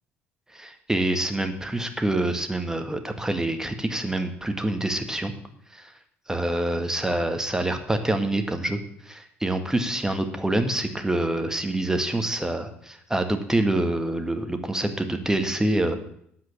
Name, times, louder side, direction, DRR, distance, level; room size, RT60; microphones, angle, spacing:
voice 1, 0.5-5.3 5.7-5.9 6.3-16.0, right 1 dB, 10° right, 7 dB, 1.5 m, -26 dB
9.5 x 7.7 x 7.3 m, 0.69 s
figure-of-eight pair, 55°, 6 cm